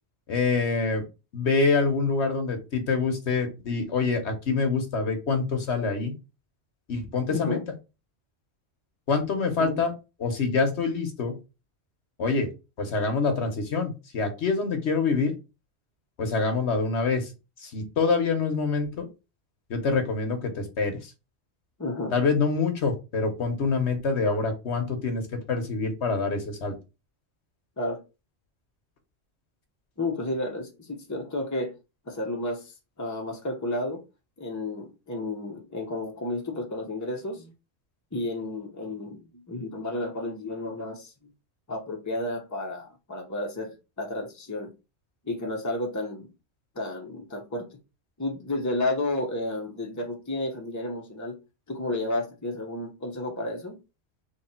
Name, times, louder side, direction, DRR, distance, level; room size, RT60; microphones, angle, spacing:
voice 1, 0.3-1.0 1.3-6.1 6.9-7.6 9.1-9.9 10.2-11.3 12.2-12.5 12.8-15.3 16.2-17.3 17.6-19.1 19.7-21.0 22.1-26.7, left 4 dB, 80° left, 6 dB, 1.3 m, -26 dB
voice 2, 7.3-7.6 9.6-9.8 21.8-22.1 27.8-28.0 30.0-31.7 32.1-34.0 34.4-37.5 38.1-41.1 41.7-44.7 45.2-46.3 46.7-47.7 48.2-51.4 51.7-53.8, left 2 dB, 20° left, 1 dB, 0.8 m, -32 dB
3.2 x 3.2 x 4.3 m, 0.28 s
omnidirectional pair, 1.1 m